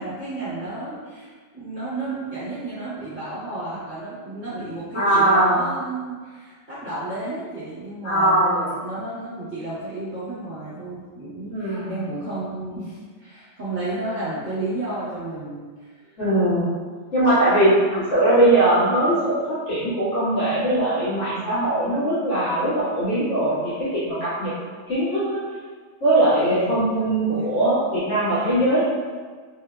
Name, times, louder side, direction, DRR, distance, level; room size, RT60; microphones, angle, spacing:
voice 1, 0.0-8.5 8.8-16.1 26.4-26.9 27.2-27.5, right 2 dB, 40° right, -13 dB, 1.2 m, -32 dB
voice 2, 4.9-5.6 8.0-8.7 11.5-11.9 16.2-16.7 17.1-24.5 24.9-25.4 26.0-28.8, right 1 dB, 65° left, -12 dB, 1.8 m, -20 dB
3.7 x 2.7 x 2.3 m, 1.5 s
omnidirectional pair, 1.3 m